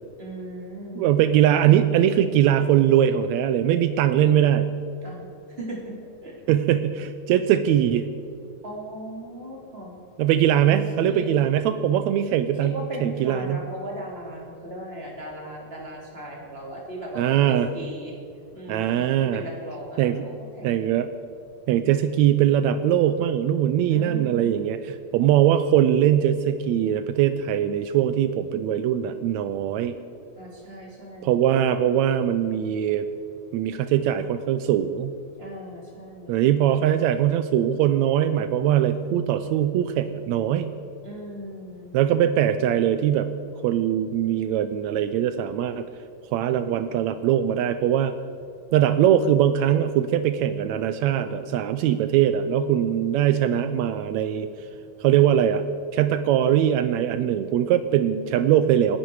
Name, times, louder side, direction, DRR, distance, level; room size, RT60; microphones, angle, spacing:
voice 1, 0.2-1.1 5.0-5.9 6.2-6.4 8.6-10.0 11.1-11.5 12.5-18.2 18.5-20.9 23.9-24.7 30.3-31.4 35.4-36.5 41.0-42.0, right 1 dB, 20° right, -2 dB, 3.0 m, -37 dB
voice 2, 0.9-4.7 6.5-8.1 10.2-13.7 17.1-17.7 18.7-19.4 20.0-20.3 20.6-21.1 21.7-30.0 31.2-33.1 33.5-35.1 36.3-40.8 41.9-43.3 43.6-45.8 46.3-48.1 48.7-54.5 55.0-55.6 55.9-59.0, right 10 dB, 85° right, 10 dB, 1.6 m, -21 dB
28.5 x 10.5 x 4.7 m, 2.6 s
omnidirectional pair, 3.8 m